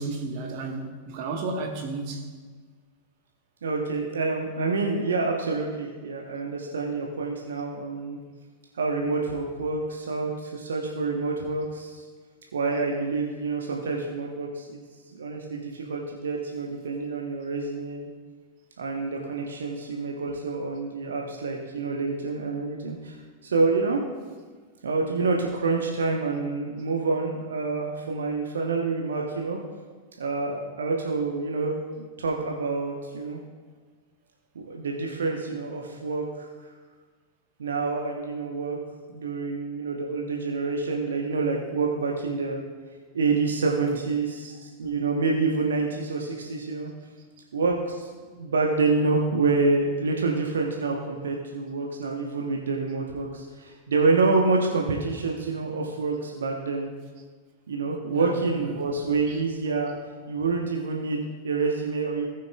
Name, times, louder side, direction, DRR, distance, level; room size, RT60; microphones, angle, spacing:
voice 1, 0.0-2.3 58.1-58.8 59.3-59.4, right 3 dB, 45° right, 2 dB, 1.3 m, -33 dB
voice 2, 3.6-8.2 8.7-12.0 12.5-14.8 15.1-18.1 18.8-23.2 23.4-24.0 24.8-29.6 30.2-33.4 34.5-36.7 37.6-38.8 39.1-42.6 43.1-46.9 47.5-48.1 48.4-56.9 57.7-60.0 60.3-62.3, right 3 dB, 65° right, 0 dB, 1.0 m, -27 dB
18.5 x 6.4 x 2.4 m, 1.5 s
figure-of-eight pair, 90°, 0 cm